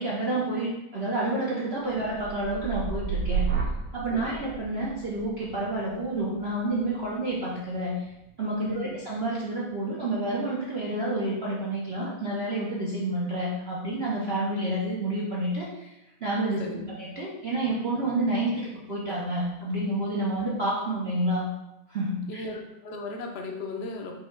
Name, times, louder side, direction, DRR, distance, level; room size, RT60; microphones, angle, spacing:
voice 1, 0.0-3.4 3.9-8.0 8.4-21.5 21.9-22.4, right 1 dB, 65° right, -6 dB, 0.6 m, -29 dB
sound 1, 1.8-9.9 10.3-10.8, right 6 dB, 85° right, 1.6 m, -34 dB
voice 2, 16.6-17.0 22.3-24.1, left 2 dB, 90° left, 0 dB, 0.5 m, -37 dB
5.3 x 2.2 x 4.5 m, 0.91 s
omnidirectional pair, 2.1 m